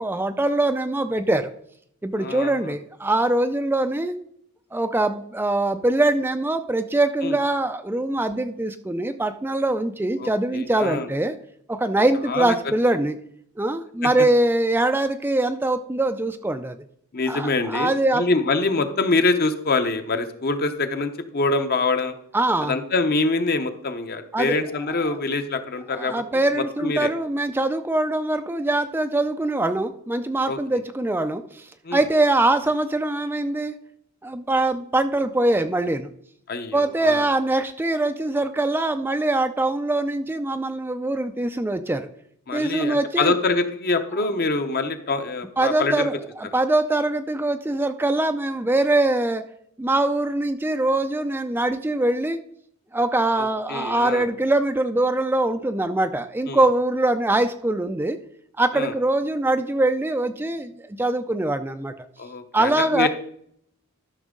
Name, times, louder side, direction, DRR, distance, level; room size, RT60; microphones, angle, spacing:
voice 1, 0.0-1.5 2.0-4.1 4.7-11.4 11.7-13.2 13.6-16.8 17.3-18.2 22.3-22.7 24.3-24.6 25.0-25.2 25.9-33.7 34.2-36.1 36.7-42.1 42.5-43.3 45.6-49.4 49.8-52.4 52.9-58.2 58.6-61.9 62.5-63.1, right 2 dB, 10° right, 8 dB, 0.3 m, -23 dB
voice 2, 2.2-2.6 7.2-7.4 10.2-11.1 12.3-12.5 17.1-22.1 22.7-27.1 30.5-30.6 31.8-32.0 36.5-37.2 42.5-46.1 53.7-54.3 56.5-56.6 58.7-58.9 62.2-63.1, left 3 dB, 45° left, 8 dB, 0.8 m, -25 dB
13.0 x 6.1 x 3.7 m, 0.69 s
head